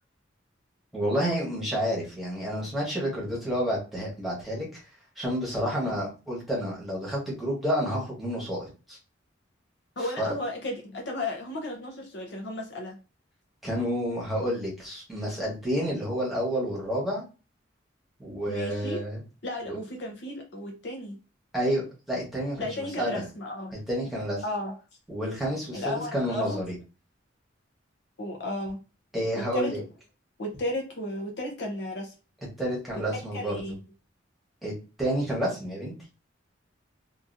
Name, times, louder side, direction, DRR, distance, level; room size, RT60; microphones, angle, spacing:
voice 1, 0.9-4.8 5.2-9.0 10.0-10.3 13.6-17.2 18.2-19.2 19.7-19.8 21.5-23.2 23.9-24.4 25.1-26.8 29.1-29.8 32.6-33.5 34.6-34.7 35.0-35.9, equal, ahead, 1.2 m, -29 dB
voice 2, 10.0-13.0 18.5-19.0 19.4-21.2 22.6-23.8 24.4-24.7 25.7-26.6 28.2-28.8 29.3-29.8 30.4-32.1 33.3-33.8, left 1 dB, 60° left, 0.7 m, -34 dB
2.9 x 2.4 x 2.5 m
head